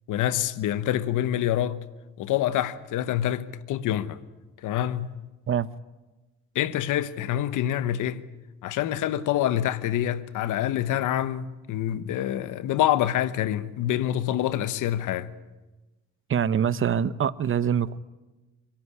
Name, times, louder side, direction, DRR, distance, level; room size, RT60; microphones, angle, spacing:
voice 1, 0.1-1.8 2.2-4.2 4.6-5.1 6.5-8.2 8.6-15.3, left 12 dB, 85° left, 1.1 m, -26 dB
voice 2, 16.3-18.0, right 8 dB, 45° right, 0.9 m, -24 dB
24.0 x 16.0 x 9.8 m
cardioid pair, 90°, 30 cm